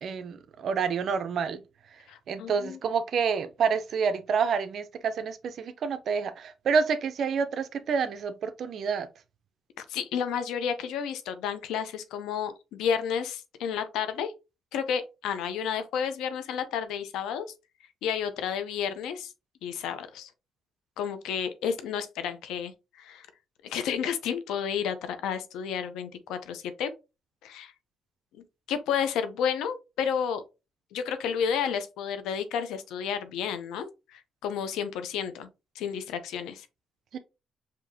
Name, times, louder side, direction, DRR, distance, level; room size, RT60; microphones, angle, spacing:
voice 1, 0.0-1.6 2.3-9.1 37.1-37.2, right 6 dB, 65° right, 0.6 m, -28 dB
voice 2, 2.1-2.8 9.8-14.3 14.7-17.5 18.0-19.3 19.6-20.3 21.0-23.3 23.6-26.9 27.4-27.7 28.3-30.4 30.9-35.5 35.8-36.7, left 7 dB, 90° left, 0.6 m, -31 dB
5.1 x 2.8 x 2.7 m
cardioid pair, 90°, 0 cm